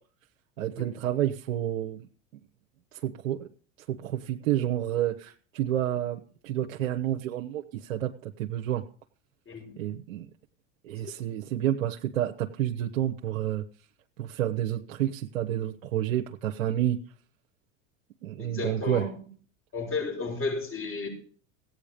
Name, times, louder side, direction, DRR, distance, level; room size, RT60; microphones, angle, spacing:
voice 1, 0.6-2.1 3.0-3.5 3.9-8.8 9.8-10.3 10.8-13.6 14.2-17.0 18.2-19.0, right 12 dB, 85° right, 2 dB, 1.2 m, -29 dB
voice 2, 9.5-9.8 11.0-11.1 18.4-19.2 19.7-21.1, left 3 dB, 30° left, 1 dB, 7.7 m, -33 dB
16.0 x 9.3 x 5.1 m, 0.42 s
hypercardioid pair, 90°, 40 cm